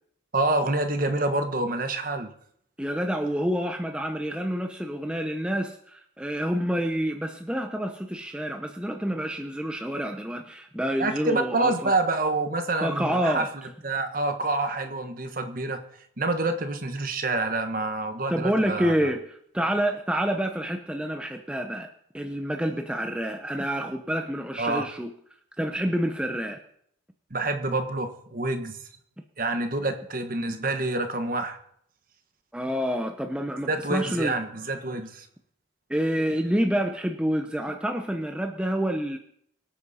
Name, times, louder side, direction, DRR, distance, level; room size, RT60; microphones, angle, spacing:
voice 1, 0.3-2.3 11.0-13.5 13.8-15.8 16.2-18.9 24.6-24.9 27.3-28.8 29.4-31.6 33.7-35.3, right 2 dB, 45° right, 7 dB, 1.4 m, -27 dB
voice 2, 2.8-11.9 12.8-13.5 18.3-21.9 22.1-25.1 25.6-26.6 32.5-34.3 35.9-39.2, equal, 5° right, 4 dB, 0.7 m, -28 dB
24.0 x 8.7 x 4.2 m, 0.70 s
head